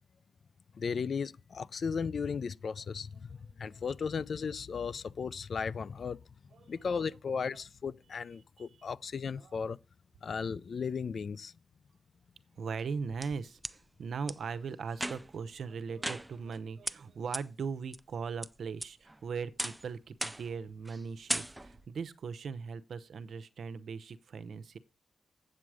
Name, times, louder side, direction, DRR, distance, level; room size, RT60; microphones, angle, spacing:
voice 1, 0.7-3.3 3.6-6.2 6.7-9.8 10.2-11.5, left 6 dB, 65° left, 0.4 m, -35 dB
voice 2, 6.5-7.0 8.6-8.7 9.4-9.6 12.6-24.8, right 5 dB, 75° right, 0.8 m, -39 dB
sound 1, 12.8-13.7 14.3-14.4 14.9-15.4 16.0-16.6 16.9-17.0 17.3-17.4 17.9-18.5 18.8-19.2 19.6-19.9 20.2-20.5 20.8-21.0 21.3-21.9, right 1 dB, 10° right, 0.5 m, -37 dB
8.1 x 7.6 x 4.8 m
cardioid pair, 70°, 0 cm